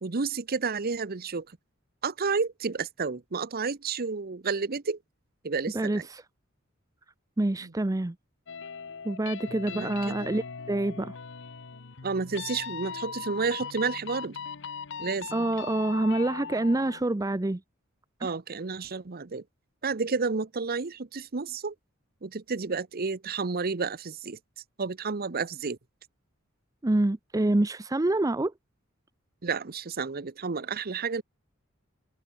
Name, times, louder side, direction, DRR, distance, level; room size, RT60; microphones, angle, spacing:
voice 1, 0.0-1.5 2.0-5.0 5.4-6.1 7.6-7.7 9.7-10.2 12.0-14.4 15.0-15.4 18.2-19.4 19.8-21.7 22.2-24.4 24.8-25.8 29.4-31.2, right 4 dB, 50° right, 0.8 m, -31 dB
voice 2, 7.4-8.1 9.0-10.4 10.7-11.1 15.3-17.6 18.2-18.3 26.8-28.5, right 2 dB, 15° right, 0.5 m, -26 dB
sound 1, 8.5-17.0, left 6 dB, 65° left, 0.9 m, -39 dB
head